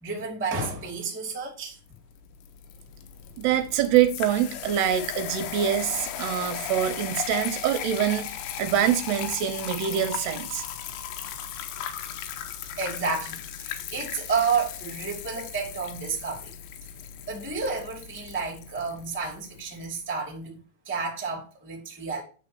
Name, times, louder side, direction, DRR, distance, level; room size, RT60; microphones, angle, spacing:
voice 1, 0.0-1.8 12.8-16.5 17.3-20.6 20.8-22.2, right 5 dB, 5° right, 1.5 m, -31 dB
sound 1, 1.9-19.9, left 10 dB, 90° left, 3.2 m, -37 dB
voice 2, 3.4-10.6, right 10 dB, 75° right, 2.9 m, -25 dB
9.5 x 3.8 x 7.0 m
omnidirectional pair, 5.0 m